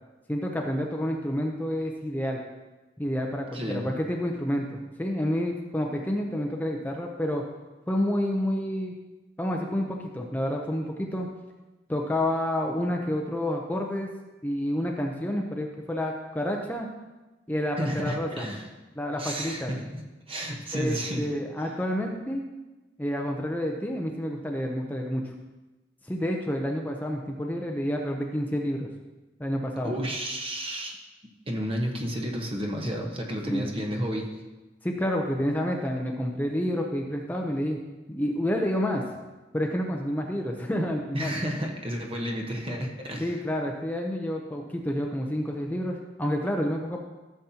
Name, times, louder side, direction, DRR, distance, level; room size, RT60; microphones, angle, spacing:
voice 1, 0.3-2.4 3.0-7.4 7.9-9.0 9.4-11.3 11.9-14.1 14.4-16.9 17.5-18.5 19.0-19.7 20.7-22.4 23.0-25.2 26.0-28.9 29.4-29.9 32.9-33.0 33.5-33.7 34.8-37.8 38.1-39.0 39.5-41.4 43.2-47.0, equal, 10° left, 1 dB, 0.7 m, -29 dB
voice 2, 3.5-3.9 17.8-18.7 19.2-21.3 29.8-31.0 31.5-34.4 41.1-43.4, equal, 30° right, 1 dB, 1.1 m, -32 dB
14.0 x 7.2 x 2.9 m, 1.1 s
head